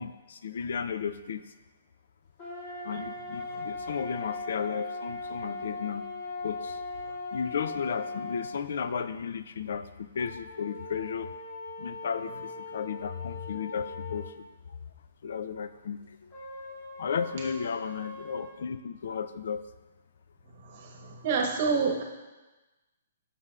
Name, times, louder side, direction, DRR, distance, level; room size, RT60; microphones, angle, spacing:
voice 1, 0.0-1.4 2.8-6.1 6.4-6.8 7.3-11.3 11.8-14.8 15.2-16.3 17.0-19.6, left 6 dB, 65° left, 11 dB, 0.3 m, -34 dB
sound 1, 2.4-8.6 10.2-14.4 16.3-18.5, left 2 dB, 30° left, 2.2 m, -39 dB
voice 2, 20.6-22.0, right 5 dB, 40° right, 1 dB, 1.0 m, -28 dB
7.5 x 6.6 x 2.4 m, 1.1 s
hypercardioid pair, 160°, 0 cm